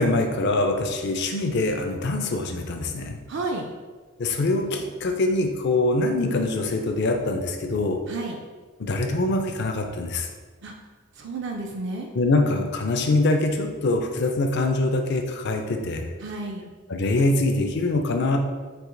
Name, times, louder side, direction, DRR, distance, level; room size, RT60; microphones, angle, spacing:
voice 1, 0.0-3.2 4.2-8.0 8.8-10.3 12.1-16.1 16.9-18.4, left 2 dB, 50° left, 4 dB, 0.5 m, -24 dB
voice 2, 3.3-3.7 8.1-8.4 10.6-10.7 11.2-12.2 16.2-16.7, right 3 dB, 55° right, 1 dB, 0.4 m, -31 dB
4.7 x 2.8 x 3.8 m, 1.4 s
head